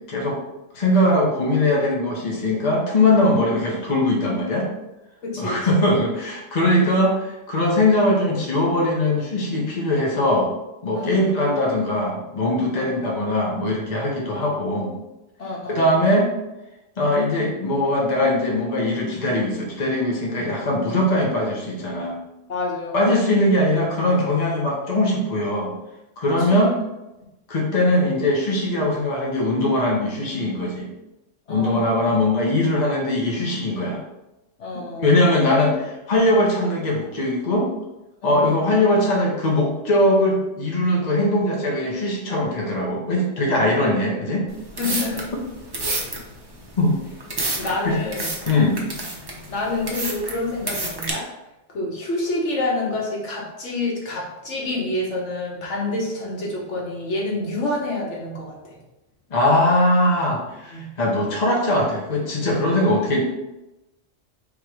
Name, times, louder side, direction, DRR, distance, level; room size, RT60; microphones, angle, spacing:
voice 1, 0.1-0.4 0.7-4.7 5.4-10.5 10.8-14.9 15.7-16.3 17.0-22.2 22.9-25.7 26.2-26.7 27.5-30.9 31.5-34.0 34.7-37.7 38.2-44.5 46.8-47.0 47.8-47.9 48.5-48.8 59.3-63.2, left 1 dB, 40° left, -3 dB, 1.0 m, -21 dB
voice 2, 5.2-5.6 10.9-11.3 12.7-13.0 15.4-15.9 22.5-23.2 26.5-26.7 31.5-32.2 34.6-35.3 38.2-38.5 43.6-43.8 44.7-45.3 45.8-46.1 47.6-48.3 49.5-51.2 51.7-58.8 60.7-60.9 62.4-62.6, left 2 dB, 75° left, -3 dB, 1.3 m, -28 dB
sound 1, 44.5-51.1, right 2 dB, 25° right, 0.6 m, -30 dB
3.6 x 3.0 x 4.7 m, 0.97 s
omnidirectional pair, 1.2 m